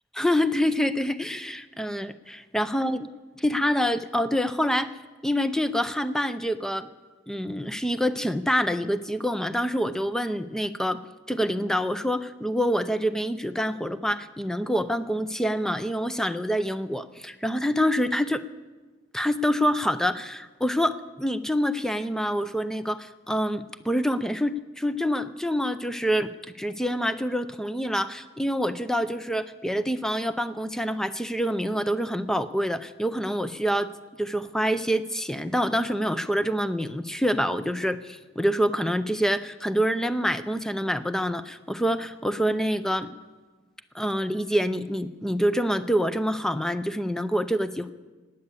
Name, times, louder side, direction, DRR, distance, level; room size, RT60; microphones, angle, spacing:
voice 1, 0.2-3.1 3.4-4.9 5.2-6.9 7.3-11.0 11.3-18.4 19.1-26.3 26.6-33.9 34.2-43.2 43.9-47.9, equal, 5° left, 12 dB, 0.5 m, -26 dB
17.5 x 9.7 x 8.4 m, 1.3 s
head